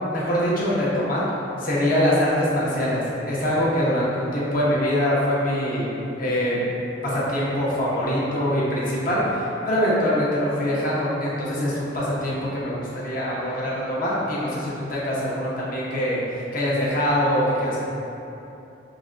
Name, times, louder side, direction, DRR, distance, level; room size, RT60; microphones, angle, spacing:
voice 1, 0.1-1.3 1.6-6.6 7.0-17.8, equal, 50° left, -7 dB, 0.8 m, -23 dB
5.9 x 2.2 x 2.5 m, 2.9 s
head